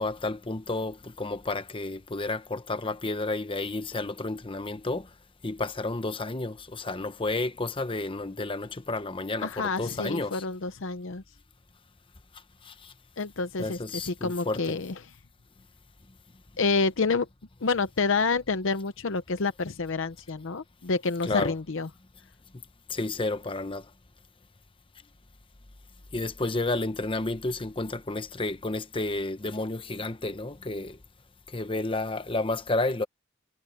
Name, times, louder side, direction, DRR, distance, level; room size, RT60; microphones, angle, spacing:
voice 1, 0.0-5.1 5.4-10.4 12.7-12.8 13.6-14.6 21.3-21.5 22.9-23.8 26.1-31.0 31.5-33.1, left 2 dB, 25° left, 0.9 m, -31 dB
voice 2, 9.4-11.2 13.2-15.1 16.6-17.3 17.6-21.9, left 4 dB, 60° left, 0.7 m, -28 dB
head